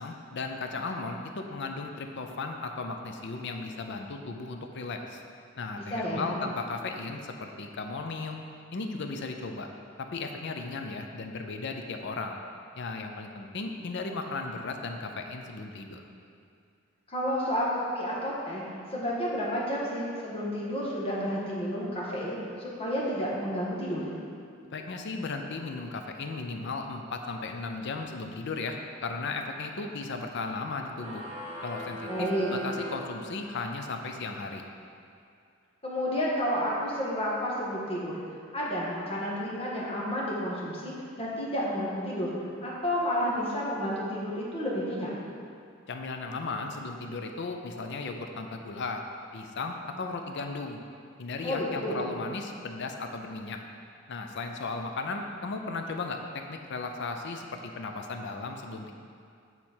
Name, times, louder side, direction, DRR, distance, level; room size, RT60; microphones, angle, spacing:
voice 1, 0.0-5.2 5.6-8.4 8.7-9.7 10.0-12.4 12.8-16.0 24.7-31.2 31.6-34.6 45.9-49.0 49.3-50.8 51.2-53.6 54.1-58.9, left 3 dB, 60° left, 4 dB, 0.6 m, -36 dB
voice 2, 5.9-6.4 17.1-18.6 18.9-24.1 32.1-32.5 35.8-38.2 38.5-42.3 42.6-45.1 51.4-52.0, equal, 30° left, -6 dB, 1.4 m, -31 dB
sound 1, 30.9-33.8, equal, 30° right, 1.0 m, -40 dB
8.2 x 4.3 x 4.4 m, 2.3 s
head